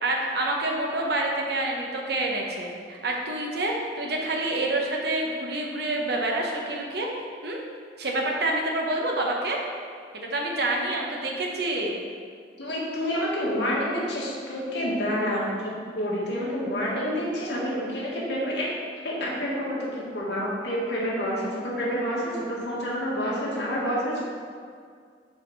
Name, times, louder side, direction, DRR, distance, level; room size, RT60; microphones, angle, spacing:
voice 1, 0.0-7.1 7.4-7.6 8.0-9.6 10.3-12.0, right 2 dB, 65° right, 0 dB, 1.0 m, -27 dB
voice 2, 12.6-18.7 19.0-24.2, equal, 80° left, -5 dB, 1.8 m, -28 dB
5.6 x 4.9 x 5.4 m, 2.1 s
head